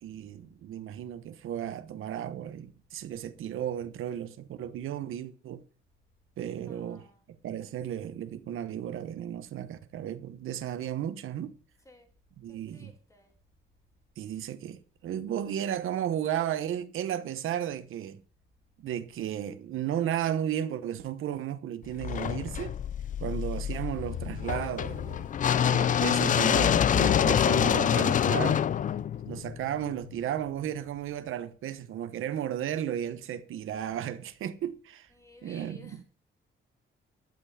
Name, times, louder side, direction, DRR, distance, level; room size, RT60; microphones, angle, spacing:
voice 1, 0.0-5.6 6.4-7.0 7.4-11.5 12.4-12.9 14.2-18.2 18.8-22.7 23.2-25.3 25.6-28.6 29.2-35.1 35.4-36.0, right 10 dB, 75° right, 1.0 m, -34 dB
voice 2, 6.7-7.2 11.8-12.1 12.5-13.3 35.1-36.0, left 2 dB, 15° left, 3.0 m, -55 dB
sound 1, 22.0-30.1, left 9 dB, 40° left, 0.4 m, -26 dB
12.0 x 5.8 x 8.6 m
cardioid pair, 165°, 21 cm